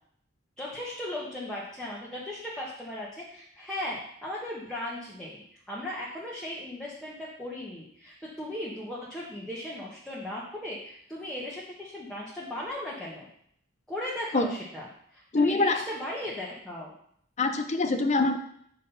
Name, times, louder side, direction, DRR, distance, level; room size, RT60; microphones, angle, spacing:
voice 1, 0.6-13.3 13.9-16.9, left 1 dB, 5° left, -7 dB, 1.3 m, -37 dB
voice 2, 15.3-15.8 17.4-18.4, left 3 dB, 35° left, 7 dB, 0.7 m, -24 dB
7.6 x 4.1 x 5.5 m, 0.67 s
head